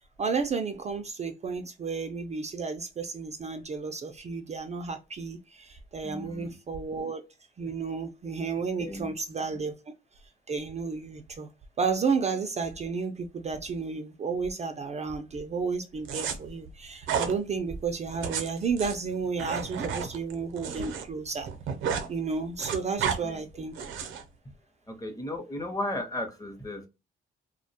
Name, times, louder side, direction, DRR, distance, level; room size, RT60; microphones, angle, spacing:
voice 1, 0.2-7.2 7.6-9.7 10.5-11.5 11.8-21.5 22.1-23.7, right 5 dB, 35° right, 0.4 m, -32 dB
voice 2, 6.0-6.5 8.8-9.1 23.2-23.4 24.9-26.9, left 1 dB, 15° left, 0.7 m, -35 dB
sound 1, 16.0-16.3 17.0-17.3 18.1-21.0 21.3-22.1 22.4-23.2 23.7-24.2, right 7 dB, 80° right, 0.6 m, -32 dB
2.3 x 2.1 x 2.7 m
cardioid pair, 90°, 20 cm